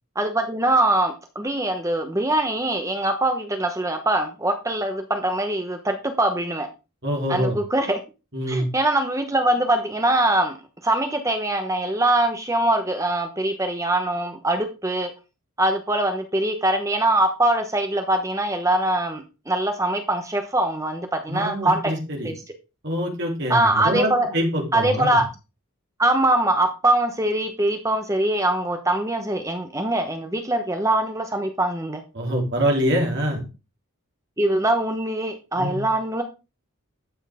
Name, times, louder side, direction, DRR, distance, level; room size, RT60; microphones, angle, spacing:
voice 1, 0.1-6.7 7.3-8.0 8.5-10.5 10.8-15.1 15.6-21.9 22.2-22.4 23.5-24.3 24.7-25.2 26.0-32.0 34.4-36.2, right 1 dB, 15° right, 6 dB, 1.0 m, -23 dB
voice 2, 7.0-7.6 8.3-8.7 21.3-22.3 22.8-25.2 32.1-33.4 35.6-35.9, equal, 50° right, -1 dB, 3.3 m, -25 dB
12.0 x 6.4 x 3.6 m, 0.29 s
head